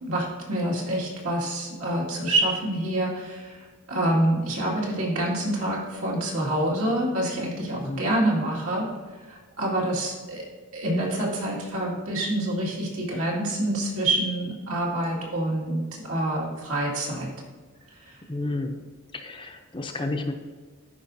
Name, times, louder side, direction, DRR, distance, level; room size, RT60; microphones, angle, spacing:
voice 1, 0.0-8.9 9.3-10.4 10.7-15.8 16.1-17.3, right 1 dB, 80° right, -4 dB, 2.2 m, -27 dB
voice 2, 7.8-8.2 18.3-18.7 19.1-20.3, left 2 dB, 25° left, 5 dB, 0.5 m, -31 dB
12.0 x 5.0 x 2.7 m, 1.4 s
head